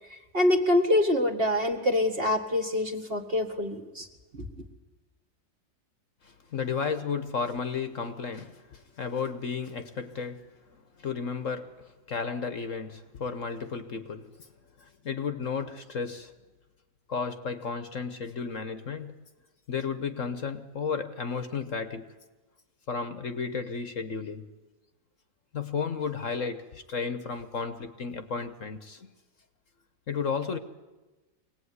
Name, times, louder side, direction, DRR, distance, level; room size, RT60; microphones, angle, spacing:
voice 1, 0.1-4.1 4.3-4.5, left 1 dB, 35° right, 2.1 m, -25 dB
voice 2, 6.2-14.5 14.8-16.3 17.1-19.1 19.7-22.1 22.9-24.5 25.5-29.1 30.1-30.6, left 5 dB, 55° left, 1.4 m, -33 dB
24.0 x 18.5 x 9.7 m
omnidirectional pair, 1.7 m